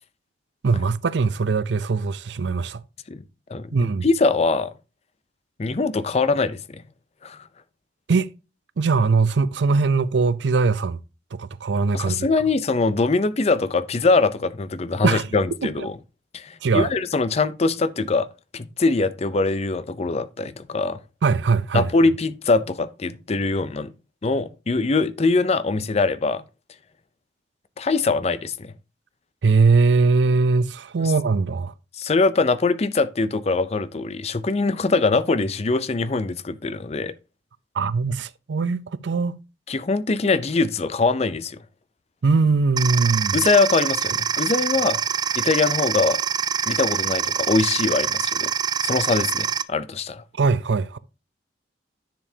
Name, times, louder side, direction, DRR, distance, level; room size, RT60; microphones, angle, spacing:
voice 1, 0.6-2.8 3.7-4.1 8.1-8.3 8.8-11.0 11.3-12.3 15.0-15.3 15.8-15.9 16.6-16.9 21.2-21.9 29.4-31.7 37.8-39.4 42.2-43.4 50.3-51.0, right 4 dB, 75° right, 0.5 m, -21 dB
voice 2, 4.0-4.7 5.6-6.8 7.2-7.4 11.9-16.0 16.3-18.3 18.5-21.0 21.7-23.9 24.2-26.4 27.8-28.7 31.9-37.1 39.7-41.6 43.3-45.0 45.4-46.2 46.7-48.5 48.8-50.2, left 3 dB, 35° left, 0.5 m, -22 dB
sound 1, 42.8-49.6, right 7 dB, 25° right, 0.3 m, -25 dB
10.5 x 6.9 x 2.8 m
head